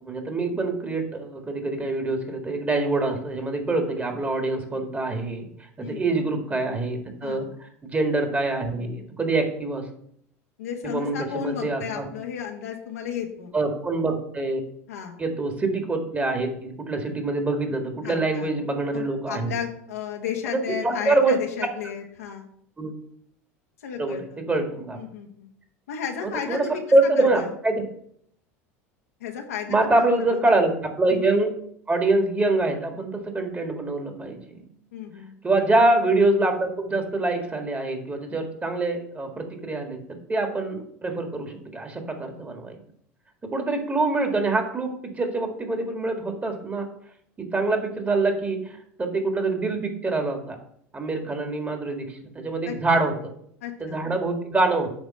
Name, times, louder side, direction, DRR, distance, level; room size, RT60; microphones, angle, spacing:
voice 1, 0.0-5.5 5.8-9.9 10.8-12.1 13.5-14.6 15.2-19.5 20.5-21.4 22.8-22.9 24.0-25.0 26.2-27.8 29.7-31.5 31.9-34.6 35.4-42.8 43.4-46.9 47.4-50.6 50.9-52.1 52.4-53.3 53.8-54.9, right 2 dB, 20° right, 4 dB, 1.7 m, -25 dB
voice 2, 5.8-6.2 7.2-7.5 10.6-13.5 14.9-15.2 18.0-22.5 23.8-24.4 24.9-25.5 25.9-26.8 27.2-27.5 29.2-30.4 31.1-31.4 34.9-35.3 52.6-52.7 53.6-54.0, left 8 dB, 85° left, 1 dB, 1.3 m, -34 dB
8.7 x 3.2 x 6.4 m, 0.68 s
hypercardioid pair, 85°, 8 cm